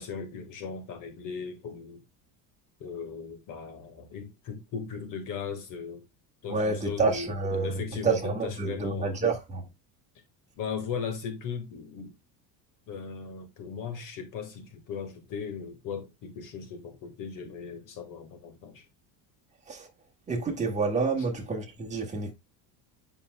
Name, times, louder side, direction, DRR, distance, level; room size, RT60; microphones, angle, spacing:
voice 1, 0.0-2.0 2.8-6.0 6.4-7.3 7.6-9.2 10.6-12.2 12.9-18.8, left 6 dB, 50° left, 1.7 m, -37 dB
voice 2, 6.5-9.6 19.7-19.9 20.3-22.3, right 4 dB, 15° right, 1.7 m, -28 dB
8.8 x 5.3 x 2.2 m
cardioid pair, 160°, 42 cm